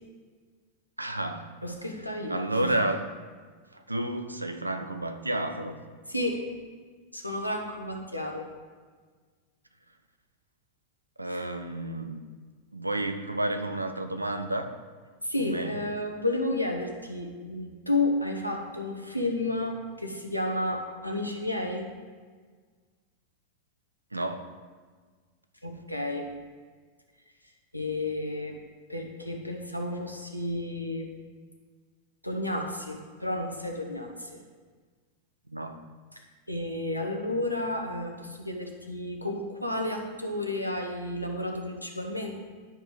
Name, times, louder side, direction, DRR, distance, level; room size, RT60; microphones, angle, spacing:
voice 1, 1.0-1.5 2.3-3.0 3.7-5.8 11.2-12.2 12.7-14.7 15.4-15.8 24.1-24.5 35.5-35.9, right 1 dB, 85° right, 8 dB, 0.5 m, -31 dB
voice 2, 1.6-2.7 6.1-6.4 7.1-8.5 11.3-11.4 15.2-21.9 25.6-26.3 27.7-28.6 28.9-31.1 32.2-34.4 36.5-42.3, left 1 dB, 90° left, 2 dB, 0.9 m, -31 dB
10.5 x 4.8 x 3.8 m, 1.5 s
figure-of-eight pair, 90°, 0 cm